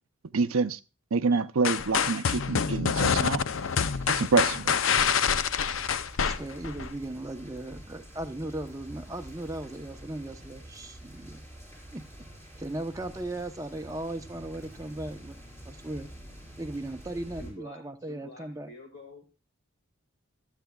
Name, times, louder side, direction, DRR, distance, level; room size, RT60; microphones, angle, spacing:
voice 1, 0.3-0.8 1.1-3.4 4.1-4.8, right 4 dB, 85° right, 0.6 m, -26 dB
sound 1, 1.6-6.9, left 6 dB, 70° left, 0.6 m, -26 dB
sound 2, 3.5-17.5, right 1 dB, 15° left, 4.8 m, -47 dB
voice 2, 6.2-11.4 11.9-12.0 12.6-15.4 15.6-16.1 16.6-18.7, right 1 dB, 15° right, 0.8 m, -37 dB
voice 3, 17.1-19.3, left 2 dB, 50° left, 2.1 m, -49 dB
24.0 x 8.2 x 2.3 m
head